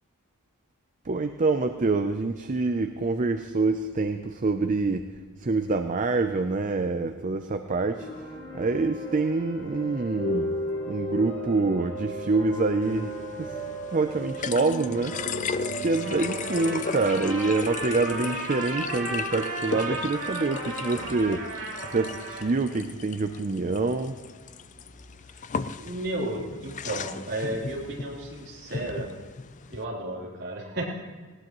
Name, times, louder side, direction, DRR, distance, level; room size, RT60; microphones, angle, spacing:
voice 1, 1.1-5.1 5.4-8.1 8.5-10.5 10.9-13.5 13.9-15.4 15.8-21.5 21.9-24.2, right 3 dB, 35° right, 7 dB, 0.5 m, -26 dB
sound 1, 7.9-19.6, right 1 dB, 80° left, 4.7 m, -36 dB
sound 2, 12.8-29.8, left 5 dB, 35° left, 0.4 m, -37 dB
Trumpet, 15.9-22.5, right 2 dB, 75° right, 5.3 m, -35 dB
voice 2, 25.8-29.1 29.7-30.9, right 1 dB, 50° right, -4 dB, 3.5 m, -33 dB
19.0 x 17.5 x 3.1 m, 1.4 s
head